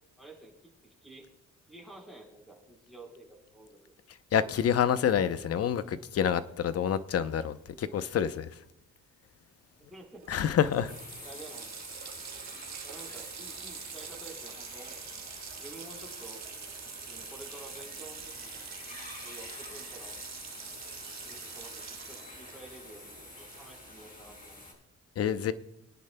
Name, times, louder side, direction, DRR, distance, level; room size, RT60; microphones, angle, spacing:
voice 1, 0.2-1.3 1.7-3.9 9.8-10.5 11.2-11.8 12.8-15.3 15.6-16.4 17.0-18.7 19.2-20.1 20.9-21.0 21.2-24.8, right 2 dB, ahead, 4.2 m, -51 dB
voice 2, 4.3-8.5 10.3-10.9 25.2-25.5, left 8 dB, 50° left, 0.7 m, -27 dB
Water tap faucet, 9.9-10.0 10.2-24.0, right 8 dB, 60° right, 1.4 m, -46 dB
sound 1, 10.9-24.7, left 2 dB, 30° left, 4.8 m, -47 dB
22.0 x 10.5 x 2.2 m
cardioid pair, 90°, 30 cm